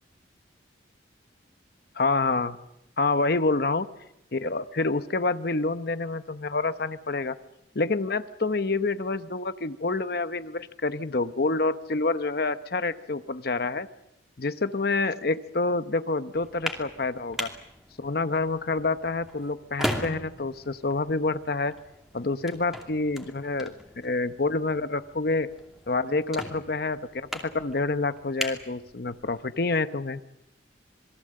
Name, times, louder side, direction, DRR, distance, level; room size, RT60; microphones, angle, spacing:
voice 1, 1.9-2.6 3.0-3.9 4.3-7.3 7.7-13.9 14.4-17.5 18.0-21.7 22.1-25.5 25.9-30.2, left 3 dB, 50° left, 11 dB, 0.8 m, -27 dB
sound 1, 16.3-29.4, equal, ahead, 2.6 m, -39 dB
27.0 x 21.5 x 7.7 m, 0.85 s
head